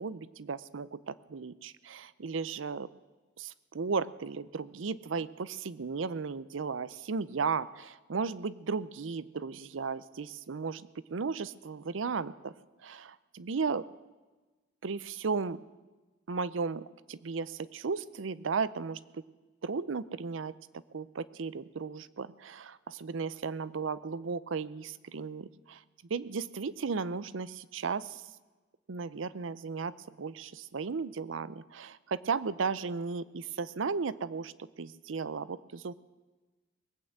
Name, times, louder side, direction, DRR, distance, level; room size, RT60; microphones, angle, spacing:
voice 1, 0.0-2.9 3.4-10.8 11.1-12.5 12.8-13.8 14.8-15.6 16.3-16.8 17.1-19.2 19.6-20.5 20.9-25.8 26.1-28.2 28.9-29.9 30.2-34.5 34.8-35.9, right 5 dB, 75° right, 17 dB, 0.6 m, -35 dB
20.0 x 8.8 x 8.0 m, 1.2 s
head